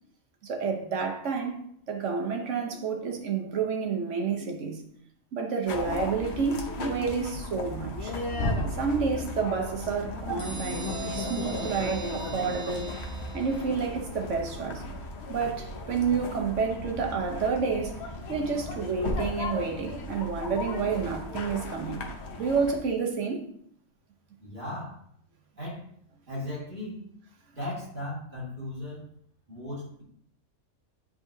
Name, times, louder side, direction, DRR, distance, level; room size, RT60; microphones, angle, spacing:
voice 1, 0.4-1.6 1.9-4.8 5.3-8.2 8.7-13.0 13.3-14.8 15.3-18.0 18.3-22.0 22.4-23.5, right 5 dB, 60° right, 1.2 m, -29 dB
sound 1, 5.7-22.8, left 2 dB, 55° left, 1.0 m, -35 dB
sound 2, 10.4-13.9, right 1 dB, 90° left, 2.2 m, -39 dB
voice 2, 24.4-25.0 25.6-25.8 26.3-27.0 27.6-29.1 29.5-30.0, left 1 dB, 35° right, 2.3 m, -36 dB
9.6 x 3.9 x 2.7 m
omnidirectional pair, 1.5 m